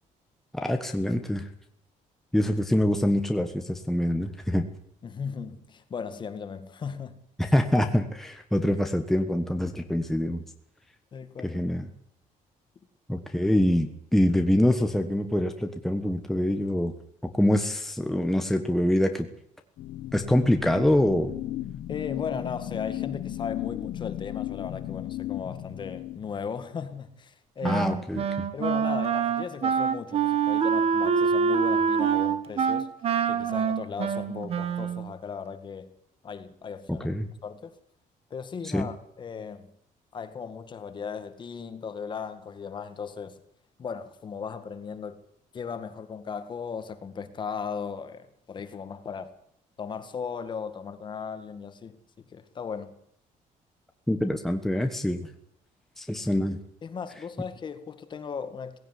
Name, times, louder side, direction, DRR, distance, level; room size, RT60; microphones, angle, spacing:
voice 1, 0.5-1.5 2.3-4.7 7.4-10.4 11.4-11.9 13.1-16.9 17.2-19.3 20.1-21.3 27.6-28.5 36.9-37.3 38.7-38.9 54.1-55.3 56.0-56.6, left 1 dB, ahead, 1.4 m, -25 dB
voice 2, 5.0-7.2 11.1-11.6 21.9-28.0 28.5-32.9 33.3-35.9 36.2-37.1 37.4-37.7 38.3-39.7 40.1-43.4 43.8-45.2 45.5-49.3 49.8-52.0 52.3-52.9 56.8-58.8, left 6 dB, 35° left, 1.9 m, -37 dB
sound 1, 19.8-26.5, left 13 dB, 75° left, 1.7 m, -35 dB
Wind instrument woodwind instrument, 27.6-35.1, right 6 dB, 45° right, 1.6 m, -25 dB
18.5 x 16.5 x 9.9 m
cardioid pair, 170°, 14 cm